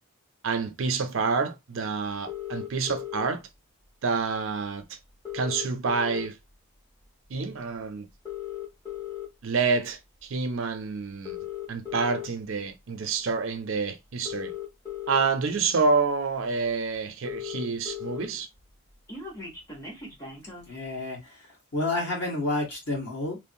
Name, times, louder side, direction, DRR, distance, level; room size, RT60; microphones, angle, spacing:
voice 1, 0.4-3.4 4.0-5.0 5.3-6.4 7.3-8.1 9.4-11.4 11.7-14.5 15.1-18.5, right 4 dB, 70° right, 0.5 m, -28 dB
sound 1, 2.3-3.3 4.5-4.6 4.8-4.9 5.1-6.5 7.0-7.3 8.1-9.3 10.0-10.2 11.1-12.3 13.5-13.6 14.1-15.3 15.9-16.0 16.3-16.4 16.7-16.8 17.0-18.3 18.6-20.7, left 10 dB, 15° left, 0.8 m, -37 dB
voice 2, 20.7-21.4 21.7-23.4, left 2 dB, 55° left, 1.5 m, -29 dB
3.1 x 2.0 x 2.6 m
head